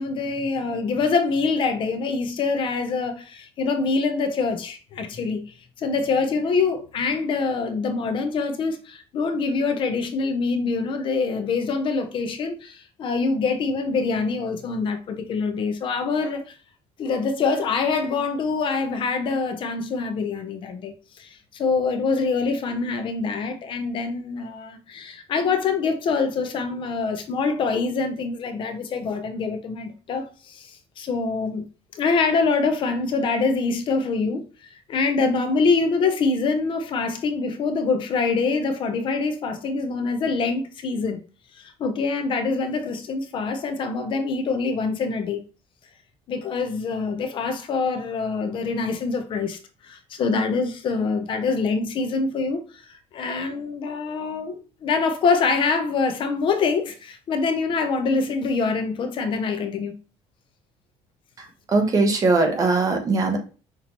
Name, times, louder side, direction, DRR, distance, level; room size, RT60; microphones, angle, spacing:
voice 1, 0.0-16.5 17.0-31.6 31.9-41.2 41.5-45.4 46.3-59.9, left 4 dB, 45° left, 0.7 m, -25 dB
voice 2, 61.4-63.4, right 3 dB, 30° right, 1.0 m, -21 dB
5.9 x 2.7 x 2.9 m
cardioid pair, 140°, 12 cm